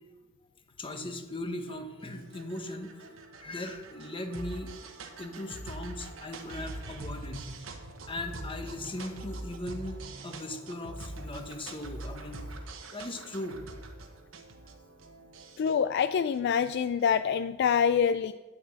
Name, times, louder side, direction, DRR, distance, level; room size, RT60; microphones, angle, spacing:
voice 1, 0.8-3.1 3.4-4.7 5.2-7.5 8.1-12.4 12.9-13.8, left 1 dB, 25° left, 6 dB, 1.0 m, -38 dB
sound 1, 1.7-17.2, right 1 dB, 75° right, 1.2 m, -44 dB
voice 2, 15.6-18.3, left 7 dB, 55° left, 12 dB, 0.3 m, -26 dB
9.5 x 6.9 x 7.0 m, 1.2 s
head